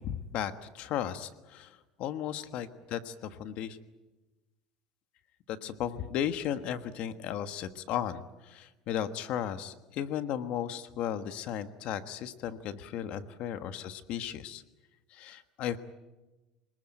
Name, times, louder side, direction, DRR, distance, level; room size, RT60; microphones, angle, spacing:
voice 1, 0.0-3.8 5.5-14.6 15.1-15.8, left 10 dB, 55° left, 11 dB, 1.4 m, -35 dB
26.5 x 19.5 x 9.0 m, 1.1 s
cardioid pair, 140°, 2 cm